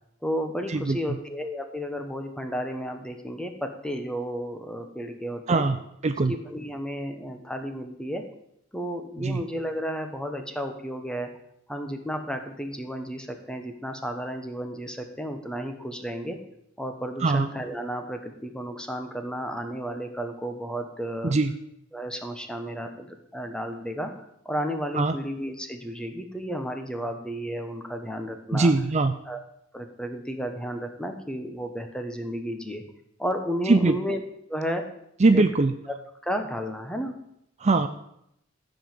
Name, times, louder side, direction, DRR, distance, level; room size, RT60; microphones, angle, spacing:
voice 1, 0.2-5.7 6.3-8.2 8.7-11.3 11.7-16.4 16.8-21.3 21.9-24.1 24.4-28.7 29.3-29.4 29.7-32.8 33.2-34.2 34.5-34.9 35.3-35.5 35.9-36.0 36.2-37.1, equal, 5° left, 5 dB, 1.2 m, -32 dB
voice 2, 28.5-29.1 33.7-33.9 35.2-35.7 37.6-37.9, right 3 dB, 35° right, 9 dB, 0.5 m, -21 dB
13.5 x 5.3 x 7.6 m, 0.78 s
head